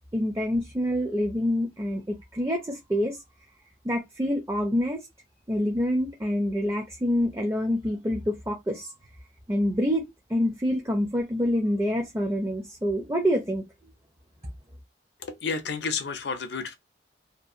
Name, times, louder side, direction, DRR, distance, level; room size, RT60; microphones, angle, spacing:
voice 1, 0.1-3.2 3.8-5.0 5.5-8.9 9.5-10.0 10.3-13.6, equal, 15° right, 0.4 m, -26 dB
voice 2, 15.2-16.7, left 5 dB, 70° left, 0.5 m, -31 dB
2.7 x 2.3 x 2.5 m
head